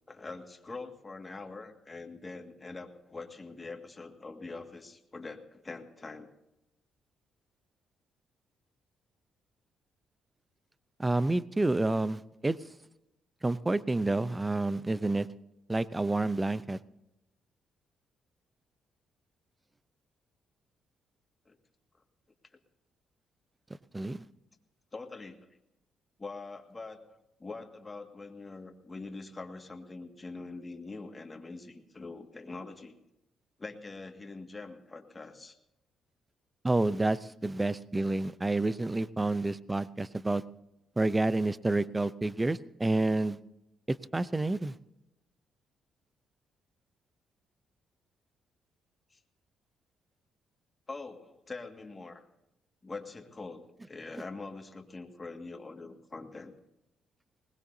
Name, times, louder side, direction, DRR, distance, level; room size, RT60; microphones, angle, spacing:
voice 1, 0.1-6.3 21.5-21.6 24.9-25.4 26.2-32.9 33.6-35.6 49.1-49.2 50.9-52.2 52.8-56.5, left 3 dB, 25° left, 4 dB, 1.8 m, -44 dB
voice 2, 11.0-12.6 13.4-15.3 15.7-16.8 23.9-24.3 36.6-40.4 41.0-43.4 44.1-44.7, right 2 dB, 15° right, 17 dB, 0.6 m, -29 dB
21.0 x 19.5 x 2.7 m, 0.89 s
cardioid pair, 90°, 0 cm